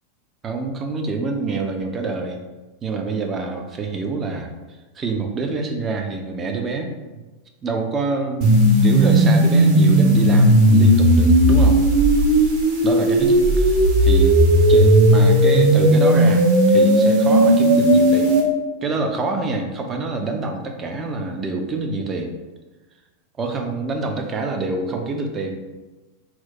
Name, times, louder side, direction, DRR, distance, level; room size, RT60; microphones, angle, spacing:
voice 1, 0.4-2.4 2.8-4.5 5.0-7.2 7.6-11.8 12.8-14.4 14.7-18.3 18.8-22.3 23.4-25.6, right 3 dB, 25° right, 3 dB, 0.5 m, -26 dB
sound 1, 8.4-18.4, right 1 dB, 40° right, 0.8 m, -15 dB
2.9 x 2.1 x 4.0 m, 1.2 s
figure-of-eight pair, 90°, 0 cm